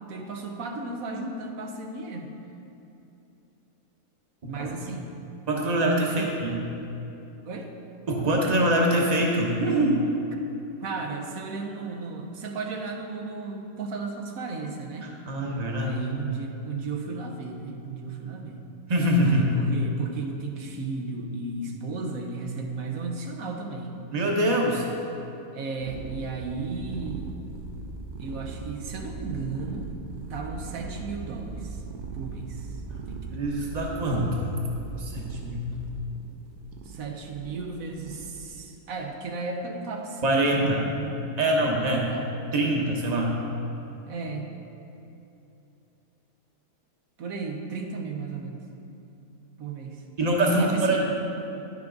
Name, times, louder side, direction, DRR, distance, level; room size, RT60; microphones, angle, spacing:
voice 1, 0.1-2.3 4.5-5.2 6.1-6.3 7.4-7.7 10.8-15.1 15.8-18.7 19.2-23.9 25.5-27.3 28.2-29.9 30.3-31.8 32.1-32.7 33.0-33.4 36.8-41.4 42.0-42.3 44.1-44.5 47.2-48.6 49.6-50.0 50.6-51.0, right 4 dB, 65° right, 3 dB, 1.2 m, -35 dB
voice 2, 5.5-6.5 8.1-10.0 15.0-16.0 18.9-19.5 24.1-24.8 33.3-34.5 35.0-35.7 40.2-40.8 41.4-42.1 42.5-43.3 50.2-51.0, right 1 dB, 30° right, -1 dB, 1.1 m, -24 dB
sound 1, 25.8-38.5, right 4 dB, 85° right, 1.2 m, -39 dB
10.5 x 7.0 x 3.9 m, 2.9 s
omnidirectional pair, 1.6 m